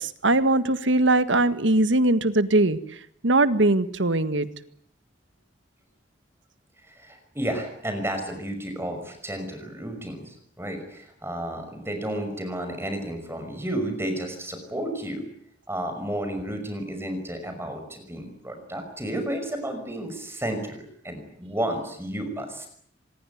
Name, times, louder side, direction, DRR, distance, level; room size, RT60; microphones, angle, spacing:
voice 1, 0.0-2.8 3.2-4.5, right 2 dB, 85° right, 12 dB, 1.7 m, -21 dB
voice 2, 6.9-15.3 15.7-22.7, right 1 dB, 15° right, 6 dB, 5.8 m, -32 dB
25.0 x 21.5 x 9.3 m, 0.66 s
head